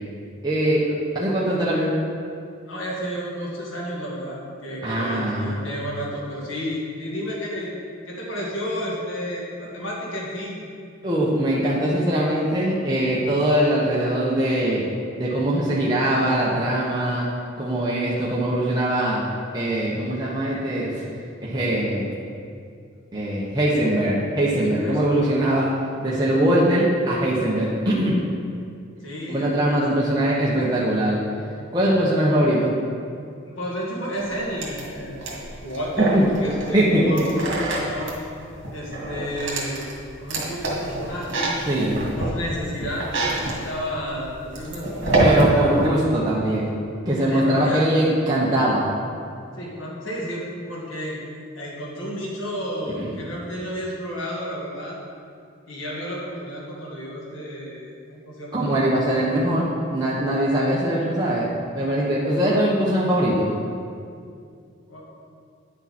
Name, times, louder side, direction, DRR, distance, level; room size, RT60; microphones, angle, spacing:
voice 1, 0.4-0.8 1.1-1.9 4.8-5.6 11.0-14.8 15.2-17.3 17.6-19.2 19.5-21.0 21.4-22.1 23.1-25.6 26.0-28.2 29.3-31.2 31.7-32.7 36.1-36.2 36.7-37.0 41.7-42.0 45.2-46.8 47.0-48.8 53.0-53.1 58.5-61.4 61.7-63.5, right 1 dB, 20° right, -7 dB, 1.1 m, -21 dB
voice 2, 2.6-7.7 8.1-10.6 24.8-25.3 29.0-29.9 33.5-35.1 35.6-38.2 38.7-39.9 40.2-41.5 42.1-43.1 43.3-45.6 47.2-48.1 49.6-51.2 51.6-55.0 55.7-59.3 64.9-65.2, equal, 80° left, -4 dB, 2.0 m, -32 dB
sound 1, 34.2-45.9, right 2 dB, 65° right, 2.1 m, -27 dB
9.7 x 6.8 x 4.3 m, 2.4 s
head